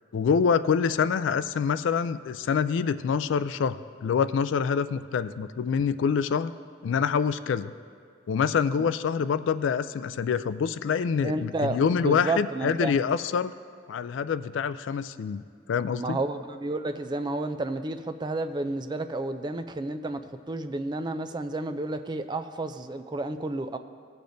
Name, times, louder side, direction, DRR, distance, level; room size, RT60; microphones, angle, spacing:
voice 1, 0.1-6.5 6.8-7.7 8.3-13.5 13.9-15.4 15.7-16.2, left 6 dB, 70° left, 13 dB, 0.3 m, -26 dB
voice 2, 11.2-12.9 16.0-20.2 20.5-23.8, right 2 dB, 25° right, 9 dB, 0.3 m, -31 dB
18.5 x 6.8 x 2.6 m, 2.2 s
head